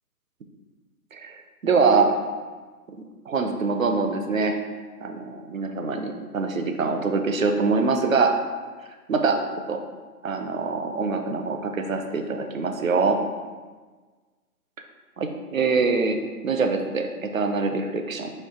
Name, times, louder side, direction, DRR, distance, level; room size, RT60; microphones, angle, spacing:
voice 1, 1.6-2.2 3.3-4.6 5.0-8.4 9.1-9.4 9.7-9.8 10.2-13.2 15.2-16.2 16.4-18.3, right 4 dB, 60° right, 6 dB, 0.5 m, -24 dB
4.4 x 3.0 x 3.7 m, 1.4 s
hypercardioid pair, 175°, 47 cm